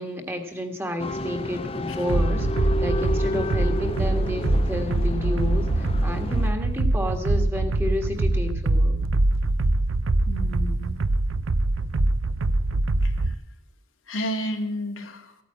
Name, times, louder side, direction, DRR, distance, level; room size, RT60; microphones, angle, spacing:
voice 1, 0.0-9.0, left 1 dB, 10° right, 4 dB, 1.6 m, -31 dB
sound 1, 1.0-6.5, left 1 dB, 30° left, 0.6 m, -31 dB
sound 2, 2.1-13.3, right 2 dB, 85° right, 0.6 m, -23 dB
voice 2, 10.3-10.9 13.0-13.4 14.1-15.4, equal, 85° left, 3 dB, 2.1 m, -31 dB
15.0 x 9.2 x 8.7 m, 0.82 s
head